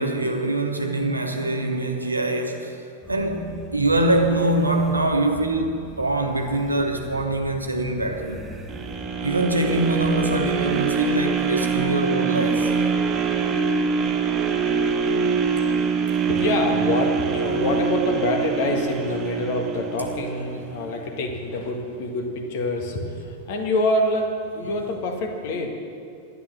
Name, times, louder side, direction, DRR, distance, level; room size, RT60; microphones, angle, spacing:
voice 1, 0.0-2.8 3.1-8.5 9.2-12.7 20.5-20.6 24.6-24.8, right 2 dB, 85° right, 4 dB, 1.2 m, -24 dB
sound 1, 3.0-10.8, right 1 dB, 10° right, 1.3 m, -41 dB
sound 2, 8.7-20.8 21.3-21.4, right 5 dB, 30° right, 1.1 m, -24 dB
voice 2, 16.2-25.7, left 1 dB, 50° left, 3 dB, 1.7 m, -26 dB
11.0 x 9.8 x 6.5 m, 2.5 s
figure-of-eight pair, 90°, 0 cm